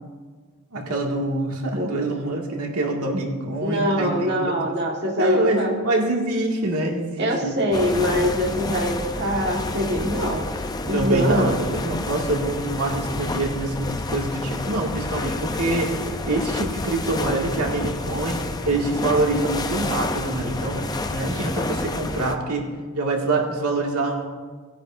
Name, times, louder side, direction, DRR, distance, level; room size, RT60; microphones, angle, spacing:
voice 1, 0.7-4.5 5.2-7.5 8.0-8.2 10.9-18.4 18.7-22.7 22.9-24.3, right 2 dB, 85° right, 0 dB, 2.0 m, -25 dB
voice 2, 3.6-5.7 7.2-10.5 10.9-11.5, equal, 50° right, -1 dB, 1.5 m, -23 dB
sound 1, 7.7-22.4, left 2 dB, 15° left, 0.4 m, -29 dB
19.0 x 9.9 x 2.6 m, 1.4 s
head